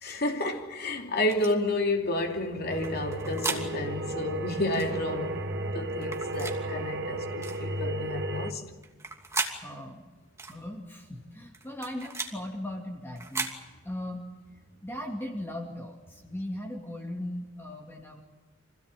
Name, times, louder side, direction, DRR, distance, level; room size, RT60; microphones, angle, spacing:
voice 1, 0.0-5.5 5.7-8.6, left 1 dB, 55° left, 2.9 m, -30 dB
sound 1, 1.3-1.5 2.8-3.6 4.7-4.9 6.0-6.6 7.4-7.6 8.8-9.6 10.4-10.6 11.5-12.3 13.2-13.6, right 3 dB, 15° right, 2.7 m, -35 dB
sound 2, 2.7-8.5, right 1 dB, 60° right, 1.7 m, -34 dB
voice 2, 9.6-10.0 10.5-13.5 13.8-14.3 14.8-18.2, left 1 dB, 10° left, 2.5 m, -38 dB
26.0 x 17.0 x 9.1 m
head